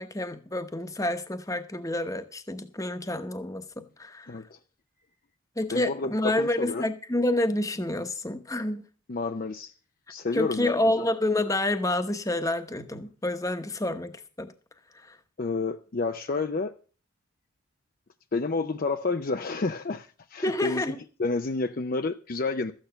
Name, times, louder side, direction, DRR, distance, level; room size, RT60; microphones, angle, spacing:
voice 1, 0.0-4.4 5.6-8.8 10.3-14.5 14.9-15.2 20.4-21.0, left 1 dB, 15° left, 9 dB, 0.9 m, -28 dB
voice 2, 4.3-4.6 5.7-6.9 9.1-9.7 10.1-11.1 15.4-16.7 18.3-20.9 21.2-22.7, left 3 dB, 40° left, 8 dB, 0.5 m, -30 dB
13.5 x 8.9 x 5.7 m, 0.39 s
head